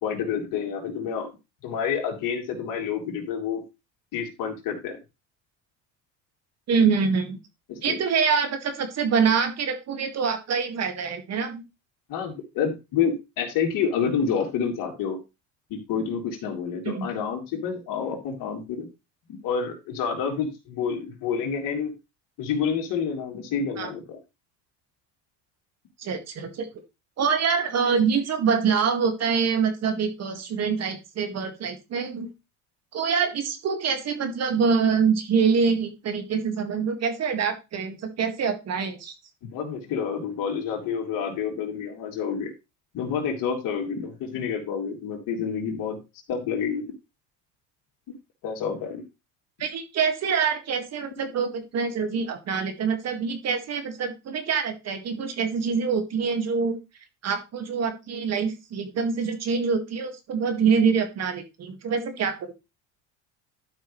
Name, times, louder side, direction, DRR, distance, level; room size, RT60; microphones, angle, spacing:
voice 1, 0.0-1.3 1.6-3.6 4.1-5.0 7.7-8.0 12.1-15.2 15.7-18.9 19.4-21.9 22.4-24.2 39.5-42.5 42.9-46.0 46.3-46.9 48.4-49.0, left 6 dB, 60° left, 1 dB, 3.3 m, -28 dB
voice 2, 6.7-7.4 7.8-11.6 16.9-17.1 23.8-23.9 26.0-26.7 27.2-32.3 32.9-39.1 49.6-56.8 57.2-62.5, right 6 dB, 45° right, 7 dB, 1.9 m, -25 dB
12.0 x 5.5 x 3.1 m, 0.25 s
supercardioid pair, 100°, 36 cm